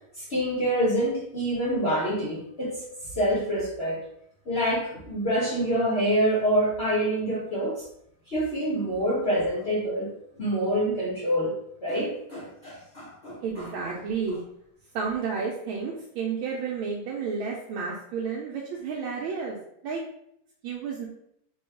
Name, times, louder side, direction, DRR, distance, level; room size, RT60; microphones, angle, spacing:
voice 1, 0.1-2.8 3.2-4.0 4.5-7.8 8.3-10.1 10.4-11.5 11.8-13.7, equal, 70° left, -6 dB, 0.6 m, -26 dB
voice 2, 13.4-14.4 14.9-19.6 19.8-20.0 20.6-21.1, right 5 dB, 75° right, -2 dB, 1.3 m, -31 dB
4.0 x 2.3 x 4.4 m, 0.74 s
omnidirectional pair, 2.4 m